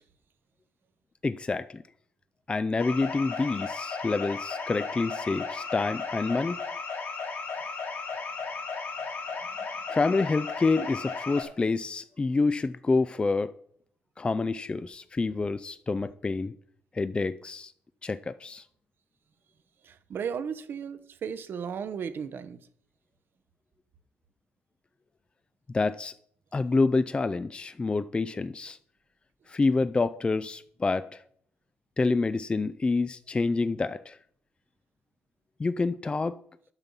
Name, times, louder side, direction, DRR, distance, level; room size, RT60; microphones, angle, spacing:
voice 1, 1.2-1.8 2.5-6.6 9.9-13.5 14.2-16.5 16.9-17.7 18.0-18.6 25.7-26.1 26.5-28.8 29.5-31.2 32.0-34.2 35.6-36.4, left 3 dB, 25° left, 0.4 m, -27 dB
sound 1, 2.8-11.4, left 4 dB, 55° left, 2.1 m, -35 dB
voice 2, 19.8-22.6, right 7 dB, 60° right, 0.8 m, -35 dB
8.9 x 5.9 x 5.4 m
supercardioid pair, 70°, 4 cm